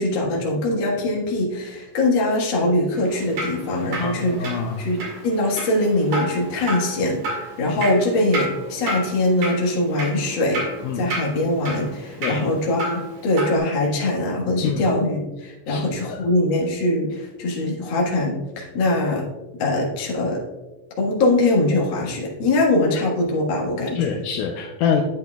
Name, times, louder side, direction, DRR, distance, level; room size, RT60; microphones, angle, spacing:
voice 1, 0.0-10.6 10.9-19.2 19.6-20.4 21.0-24.2, left 2 dB, 45° left, -2 dB, 1.7 m, -22 dB
Drip, 3.0-13.6, right 1 dB, 55° right, 3.2 m, -32 dB
voice 2, 4.0-4.8 6.6-6.7 10.8-11.0 12.2-12.4 14.6-14.9 15.7-16.2 24.0-25.0, left 7 dB, 80° left, 4 dB, 2.0 m, -26 dB
9.9 x 8.5 x 2.3 m, 1.1 s
omnidirectional pair, 3.8 m